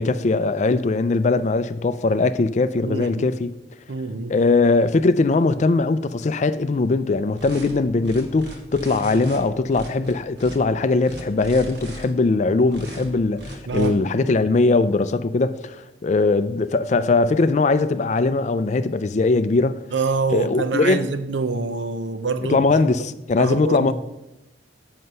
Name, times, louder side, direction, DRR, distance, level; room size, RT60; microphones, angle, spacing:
voice 1, 0.0-3.5 4.3-19.8 20.3-21.1 22.5-23.9, left 3 dB, 40° left, 0.4 m, -20 dB
voice 2, 2.8-3.3 3.9-4.3 13.7-14.0 19.9-22.6 23.4-23.9, right 4 dB, 90° right, 0.7 m, -25 dB
sound 1, 7.4-7.7 8.0-9.4 9.7-10.6 11.0-12.0 12.7-13.0 13.4-13.9, equal, 70° right, 1.6 m, -37 dB
7.8 x 6.5 x 5.4 m
head